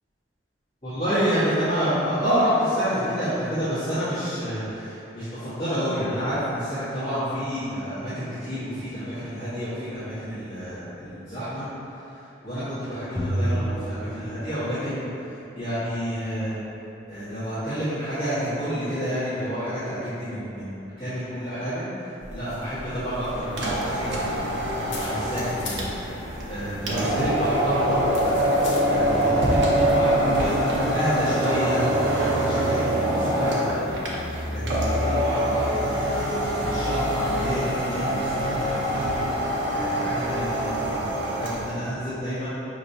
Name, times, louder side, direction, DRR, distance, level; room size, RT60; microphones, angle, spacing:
voice 1, 0.8-11.7 12.0-16.6 17.1-24.5 24.9-26.2 26.5-28.4 28.9-39.1 39.7-42.5, equal, 30° left, -19 dB, 1.4 m, -29 dB
sound 1, 13.2-15.0, right 1 dB, 10° left, 0.4 m, -29 dB
sound 2, 22.2-30.9, left 1 dB, 85° left, 0.8 m, -41 dB
sound 3, 23.5-41.7, right 1 dB, 80° right, 0.6 m, -24 dB
5.2 x 3.0 x 2.7 m, 3.0 s
head